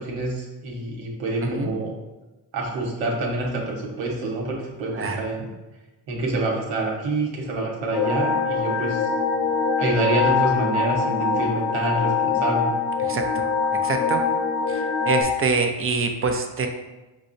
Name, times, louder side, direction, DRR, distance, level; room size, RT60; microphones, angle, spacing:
voice 1, 0.0-1.9 2.5-5.5 6.1-9.0 9.8-12.7, right 2 dB, 80° right, -2 dB, 1.0 m, -27 dB
voice 2, 1.4-1.8 4.9-5.2 13.1-13.4 13.8-14.2 14.7-16.7, right 4 dB, 30° right, 5 dB, 0.5 m, -25 dB
sound 1, 7.9-15.2, left 5 dB, 35° left, 0.7 m, -23 dB
5.3 x 2.0 x 2.5 m, 1.1 s
supercardioid pair, 60°, 44 cm